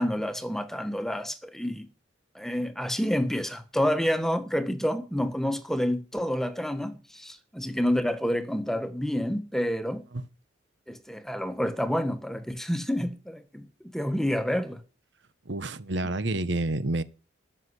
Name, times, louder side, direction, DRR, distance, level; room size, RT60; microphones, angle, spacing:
voice 1, 0.0-1.9 2.3-10.0 10.9-13.7 13.9-14.8, equal, ahead, 1.3 m, -28 dB
voice 2, 15.5-17.0, right 2 dB, 70° right, 1.0 m, -29 dB
13.5 x 6.4 x 9.7 m
head